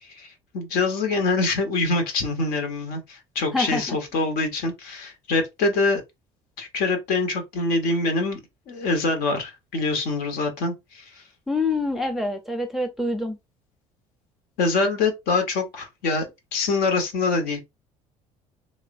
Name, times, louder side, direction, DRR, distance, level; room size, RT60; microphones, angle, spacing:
voice 1, 0.0-6.0 6.6-8.4 8.7-11.2 14.6-16.3 16.5-17.6, left 3 dB, 60° left, 0.9 m, -25 dB
voice 2, 3.5-4.0 11.5-13.4, left 2 dB, ahead, 0.5 m, -26 dB
3.0 x 2.1 x 2.5 m
hypercardioid pair, 60°, 18 cm